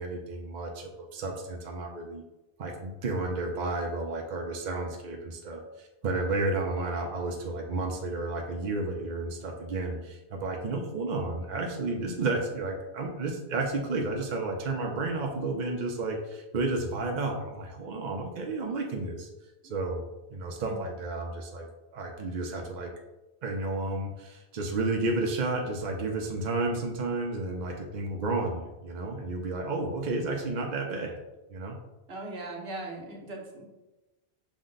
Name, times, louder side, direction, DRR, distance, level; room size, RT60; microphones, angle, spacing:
voice 1, 0.0-2.2 2.6-19.3 19.6-20.0 20.3-21.7 21.9-22.9 23.4-31.2 31.5-31.8, right 2 dB, 50° right, 1 dB, 0.6 m, -32 dB
voice 2, 32.1-33.7, right 2 dB, 70° right, 0 dB, 1.2 m, -39 dB
6.1 x 2.1 x 3.9 m, 1.0 s
omnidirectional pair, 1.1 m